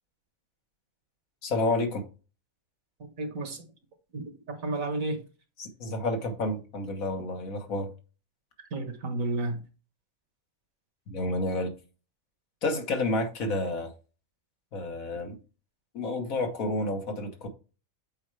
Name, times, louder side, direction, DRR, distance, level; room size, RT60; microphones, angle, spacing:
voice 1, 1.4-2.0 5.6-7.9 11.1-11.7 12.6-13.9 14.7-15.3 15.9-17.5, left 2 dB, 80° left, 1.7 m, -30 dB
voice 2, 3.2-3.6 4.1-5.2 8.7-9.6, right 2 dB, 75° right, 1.8 m, -32 dB
7.9 x 4.6 x 3.2 m
omnidirectional pair, 1.4 m